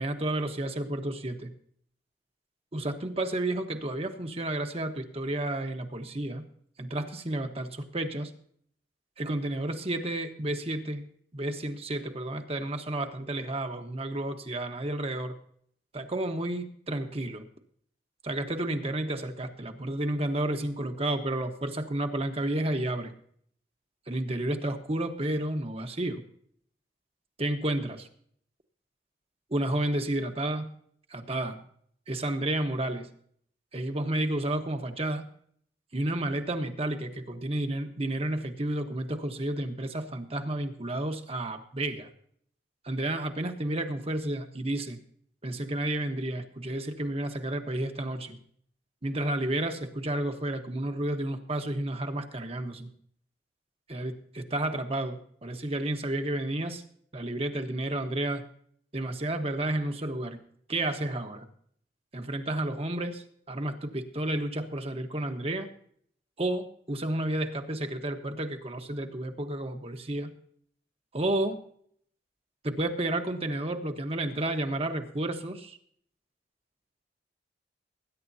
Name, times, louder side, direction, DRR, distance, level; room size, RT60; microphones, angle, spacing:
voice 1, 0.0-1.5 2.7-6.5 6.8-8.3 9.2-11.0 11.3-15.3 15.9-17.4 18.2-23.1 24.1-26.2 27.4-28.1 29.5-30.7 31.1-31.6 32.1-33.1 33.7-35.3 35.9-42.1 42.8-45.0 45.4-48.4 49.0-52.9 53.9-56.8 57.1-58.4 58.9-60.4 60.7-61.5 62.1-65.7 66.4-70.3 71.1-71.6 72.6-75.8, right 1 dB, 35° right, 6 dB, 1.2 m, -31 dB
21.0 x 10.0 x 2.8 m, 0.62 s
head